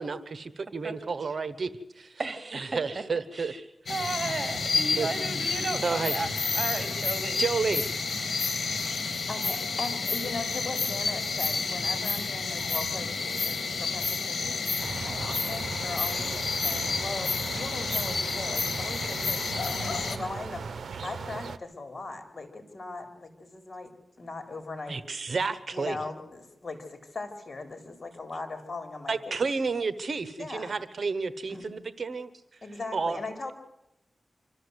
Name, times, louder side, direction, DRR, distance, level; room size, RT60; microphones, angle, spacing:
voice 1, 0.0-1.7 2.0-2.2 2.5-3.5 5.0-5.1 5.4-6.1 7.4-8.0 24.9-26.0 29.1-32.3 32.9-33.2, right 4 dB, 65° right, 14 dB, 1.1 m, -31 dB
voice 2, 2.2-3.0 3.3-3.6 3.9-6.3 6.5-7.4, right 3 dB, 45° right, 9 dB, 2.8 m, -34 dB
sound 1, 3.9-20.2, left 4 dB, 70° left, 2.0 m, -30 dB
voice 3, 9.3-20.7 21.0-23.9 24.2-25.0 25.7-29.4 30.4-30.7 31.5-31.7 32.6-33.5, left 3 dB, 50° left, 7 dB, 3.7 m, -39 dB
sound 2, 14.8-21.6, right 5 dB, 85° right, 0.8 m, -38 dB
25.5 x 13.5 x 8.1 m, 0.90 s
cardioid pair, 55°, 0 cm